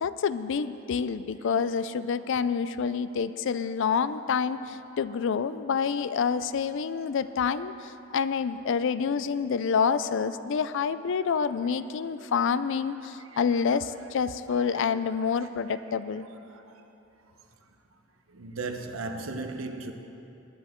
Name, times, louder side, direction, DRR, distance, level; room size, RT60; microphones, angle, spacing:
voice 1, 0.0-16.3, left 6 dB, 65° left, 0.4 m, -28 dB
voice 2, 12.3-12.8 13.3-14.1 14.5-15.3 15.7-15.9 16.1-16.8 18.3-19.9, right 3 dB, 85° right, 0.9 m, -40 dB
18.5 x 10.0 x 3.7 m
head